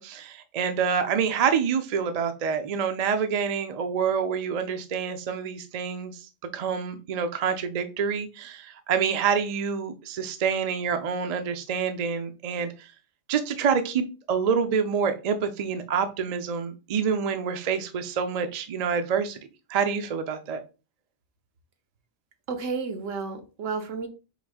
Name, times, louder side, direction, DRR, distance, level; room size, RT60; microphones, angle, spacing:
voice 1, 0.0-6.1 6.5-12.7 13.3-19.4 19.7-20.6, right 6 dB, 50° right, 8 dB, 0.5 m, -27 dB
voice 2, 22.5-24.1, right 4 dB, 80° right, 6 dB, 1.2 m, -31 dB
4.0 x 2.6 x 4.8 m, 0.31 s
omnidirectional pair, 1.3 m